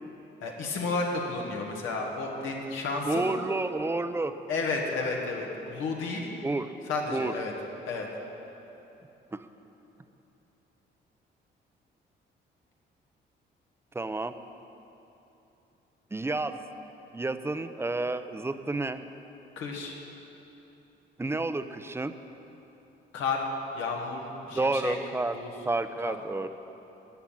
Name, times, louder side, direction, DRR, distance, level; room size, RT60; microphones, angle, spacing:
voice 1, 0.4-3.3 4.5-6.3 6.9-7.5 7.9-8.1 19.6-19.9 23.1-23.5 23.7-25.0 25.3-25.5 26.0-26.2, left 3 dB, 85° left, 0 dB, 1.7 m, -32 dB
voice 2, 3.1-4.3 6.4-6.7 7.1-7.3 9.3-9.4 13.9-14.3 16.1-16.5 17.1-19.0 21.2-22.1 24.5-25.4 25.6-26.5, right 2 dB, 10° right, 10 dB, 0.6 m, -30 dB
13.5 x 5.8 x 9.0 m, 3.0 s
cardioid pair, 90°, 20 cm